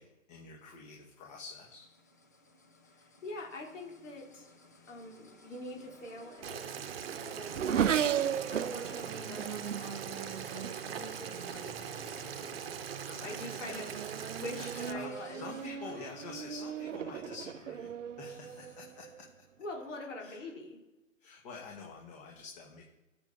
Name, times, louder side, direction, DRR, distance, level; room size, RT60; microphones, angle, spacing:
voice 1, 0.0-1.9 13.1-19.3 20.2-20.5 21.2-22.8, left 4 dB, 30° left, 0 dB, 2.2 m, -48 dB
sound 1, 0.6-15.7, left 2 dB, 15° left, 0.4 m, -56 dB
voice 2, 2.9-4.5 4.9-13.9 14.4-15.5 16.0-16.1 19.6-20.8, left 2 dB, 65° left, -1 dB, 4.4 m, -45 dB
Race car auto racing / Accelerating revving vroom, 5.9-11.8 12.6-13.0 13.4-19.3, right 9 dB, 65° right, 0.7 m, -36 dB
Boiling, 6.4-14.9, right 8 dB, 45° right, 1.0 m, -41 dB
18.0 x 7.4 x 4.2 m, 1.0 s
figure-of-eight pair, 135°, 40 cm